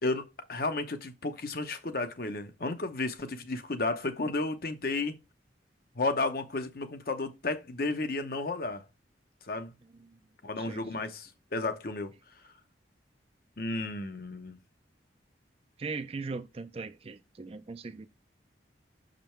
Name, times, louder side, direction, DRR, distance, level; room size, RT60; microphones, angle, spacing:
voice 1, 0.0-5.2 6.0-8.8 9.5-9.7 10.4-12.1 13.6-14.6, left 3 dB, 50° left, 0.8 m, -33 dB
voice 2, 10.6-11.1 15.8-18.1, right 4 dB, 30° right, 0.4 m, -39 dB
6.4 x 5.2 x 4.4 m
head